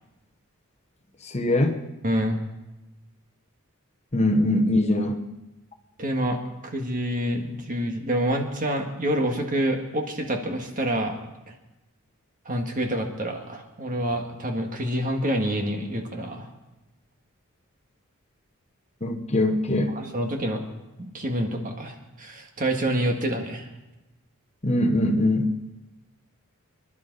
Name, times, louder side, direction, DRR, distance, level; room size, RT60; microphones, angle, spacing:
voice 1, 1.2-1.8 4.1-5.2 19.0-20.0 24.6-25.6, left 1 dB, 30° left, 5 dB, 1.0 m, -22 dB
voice 2, 2.0-2.4 6.0-11.2 11.5-11.6 12.5-16.5 20.0-20.6 21.0-23.7, right 1 dB, 40° right, 3 dB, 1.8 m, -27 dB
25.5 x 11.5 x 4.0 m, 1.0 s
head